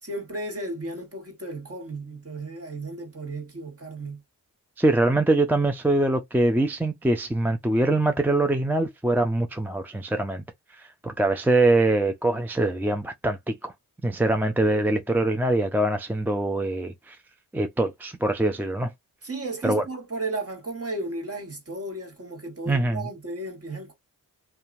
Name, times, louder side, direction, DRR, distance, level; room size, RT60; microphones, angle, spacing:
voice 1, 0.0-4.2 19.2-23.9, right 2 dB, 35° right, 1.7 m, -34 dB
voice 2, 4.8-10.4 10.8-13.7 14.0-17.2 17.5-18.9 19.6-19.8 22.7-23.0, right 2 dB, 5° right, 0.4 m, -23 dB
2.8 x 2.3 x 2.6 m
cardioid pair, 60°, 39 cm